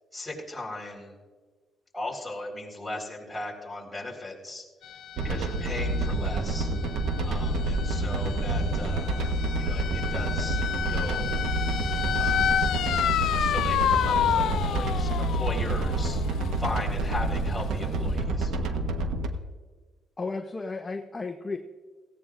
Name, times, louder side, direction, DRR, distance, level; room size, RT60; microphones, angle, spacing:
voice 1, 0.1-1.1 1.9-4.6 5.2-6.7 7.2-9.1 9.6-10.6 10.9-11.3 12.2-12.5 13.3-16.2 16.6-18.5, left 2 dB, 5° left, -3 dB, 4.5 m, -37 dB
sound 1, 4.8-18.2, left 9 dB, 75° left, 0.6 m, -31 dB
sound 2, 5.2-19.3, right 2 dB, 80° right, 1.2 m, -28 dB
voice 2, 20.2-21.6, left 3 dB, 25° left, 5 dB, 0.8 m, -33 dB
17.5 x 16.0 x 2.6 m, 1.4 s
cardioid pair, 90°, 0 cm